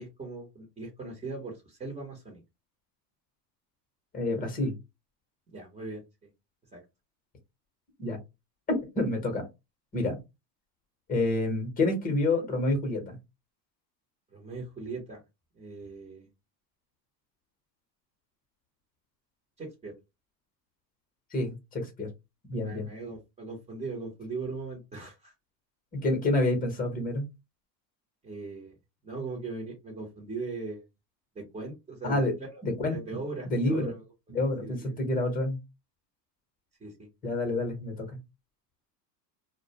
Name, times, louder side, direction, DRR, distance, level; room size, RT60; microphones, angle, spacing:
voice 1, 0.0-2.4 5.5-6.0 6.7-6.8 14.3-15.2 15.5-16.3 19.6-19.9 22.6-25.3 28.2-28.7 29.0-30.8 31.3-32.6 32.9-34.0 34.6-35.0 36.8-36.9, right 3 dB, 15° right, -2 dB, 0.6 m, -39 dB
voice 2, 4.1-4.7 8.0-8.2 8.7-9.5 9.9-10.2 11.1-13.2 21.3-22.1 22.5-22.9 25.9-27.3 32.0-32.3 32.6-33.0 33.4-33.9 34.3-35.6 37.2-38.2, left 2 dB, 15° left, 4 dB, 0.8 m, -28 dB
2.3 x 2.1 x 2.8 m, 0.23 s
supercardioid pair, 125°, 49 cm